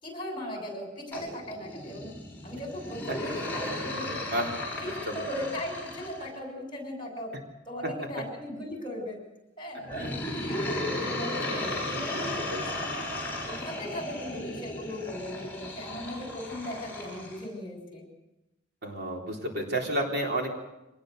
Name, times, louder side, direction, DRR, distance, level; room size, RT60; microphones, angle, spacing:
voice 1, 0.0-2.1 2.4-4.1 4.8-7.3 7.7-9.2 9.6-12.8 13.4-18.0, left 1 dB, 25° left, 3 dB, 6.3 m, -38 dB
sound 1, 1.1-6.3 9.9-17.4, left 1 dB, 10° left, 5.9 m, -35 dB
voice 2, 18.8-20.5, right 1 dB, 55° right, 1 dB, 3.7 m, -31 dB
25.0 x 19.5 x 6.7 m, 0.96 s
head